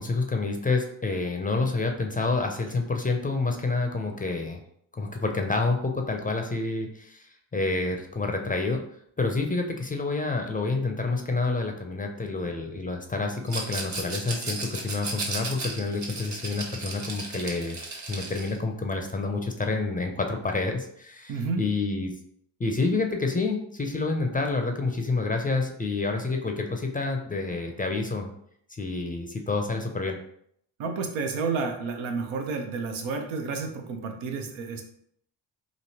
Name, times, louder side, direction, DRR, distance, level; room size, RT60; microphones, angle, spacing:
voice 1, 0.0-4.6 4.9-8.8 9.2-17.8 18.1-22.1 22.6-28.3 28.7-30.2, left 3 dB, 20° left, 3 dB, 0.4 m, -28 dB
Rattle, 13.5-18.6, right 3 dB, 40° right, 1.0 m, -35 dB
voice 2, 21.3-21.6 30.8-34.8, right 4 dB, 90° right, 4 dB, 0.7 m, -30 dB
3.2 x 2.5 x 2.8 m, 0.68 s
supercardioid pair, 65°, 46 cm